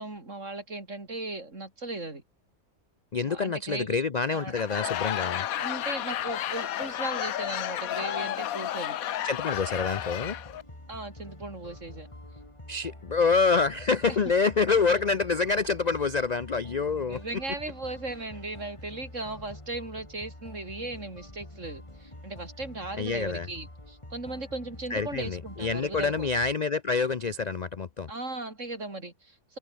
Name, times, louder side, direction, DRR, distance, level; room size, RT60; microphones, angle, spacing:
voice 1, 0.0-2.2 3.2-4.0 4.3-4.6 5.3-9.0 10.9-12.1 14.1-14.2 16.9-26.3 28.1-29.6, right 2 dB, 55° right, 4.9 m, -37 dB
voice 2, 3.1-5.4 9.2-10.4 12.7-17.2 23.0-23.5 24.9-28.1, left 4 dB, 40° left, 0.6 m, -27 dB
Laughter / Crowd, 4.4-10.6, left 11 dB, 70° left, 1.2 m, -32 dB
sound 1, 9.5-26.5, left 1 dB, 20° left, 3.9 m, -46 dB
open air
omnidirectional pair, 1.6 m